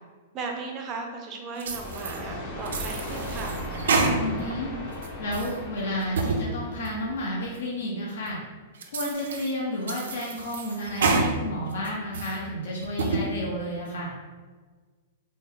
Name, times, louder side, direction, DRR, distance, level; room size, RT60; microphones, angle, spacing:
voice 1, 0.3-3.6, right 3 dB, 20° right, 1 dB, 0.4 m, -36 dB
sound 1, 1.6-2.2 2.7-4.5 4.9-5.6 6.0-6.4 6.8-6.9 7.5-7.6 8.3-8.4 8.8-9.5 9.9-11.3 11.7-12.4 12.8-13.2, right 4 dB, 85° right, 0.5 m, -28 dB
sound 2, 1.7-7.4, left 1 dB, 25° left, 0.6 m, -37 dB
voice 2, 4.1-4.7 5.2-8.4 8.9-14.1, left 1 dB, 70° left, -4 dB, 0.8 m, -31 dB
4.1 x 2.0 x 3.5 m, 1.4 s
supercardioid pair, 175°, 0 cm